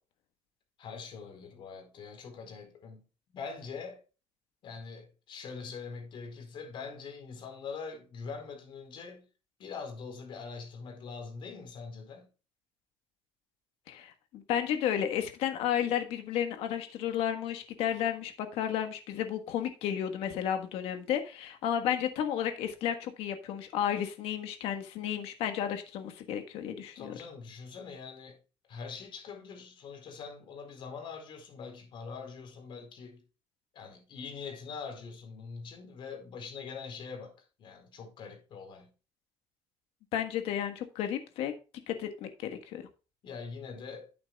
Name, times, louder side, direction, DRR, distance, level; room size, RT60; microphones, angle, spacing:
voice 1, 0.8-3.0 3.3-4.0 4.6-9.2 9.6-12.3 26.9-28.4 28.7-33.2 33.7-37.3 37.6-38.9 43.2-44.1, left 5 dB, 55° left, 4.4 m, -43 dB
voice 2, 13.9-27.1 40.1-41.5 41.9-42.8, left 10 dB, 90° left, 1.5 m, -32 dB
12.0 x 8.7 x 2.4 m
cardioid pair, 135°, 10 cm